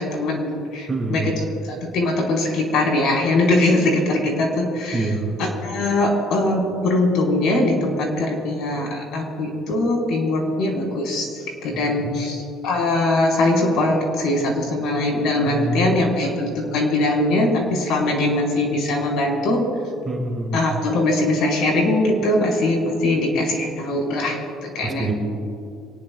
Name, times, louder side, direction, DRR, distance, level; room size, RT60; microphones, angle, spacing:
voice 1, 0.0-1.4 1.7-5.1 5.4-19.6 20.5-25.1, left 2 dB, 65° left, -1 dB, 4.8 m, -21 dB
voice 2, 0.9-1.3 4.9-5.3 12.0-12.2 15.5-16.0 20.1-20.6 24.8-25.1, right 2 dB, 20° right, 1 dB, 2.6 m, -25 dB
27.0 x 19.5 x 2.5 m, 2.4 s
cardioid pair, 155°, 0 cm